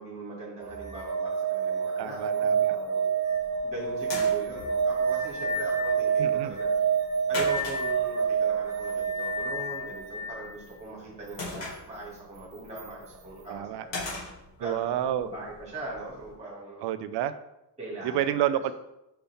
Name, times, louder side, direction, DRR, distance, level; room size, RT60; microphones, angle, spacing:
voice 1, 0.0-3.1 3.6-6.7 7.3-14.2 14.6-16.8 17.8-18.4, right 2 dB, 15° right, -5 dB, 2.2 m, -40 dB
sound 1, 0.6-10.4 12.8-12.9, right 6 dB, 40° right, 1.0 m, -28 dB
voice 2, 2.0-2.8 6.2-6.6 13.5-13.8 14.6-15.3 16.8-17.3 18.0-18.7, right 11 dB, 65° right, 12 dB, 0.5 m, -29 dB
sound 2, 3.3-16.3, left 2 dB, 75° left, 2.5 m, -43 dB
5.7 x 5.5 x 3.5 m, 0.90 s
cardioid pair, 180°, 44 cm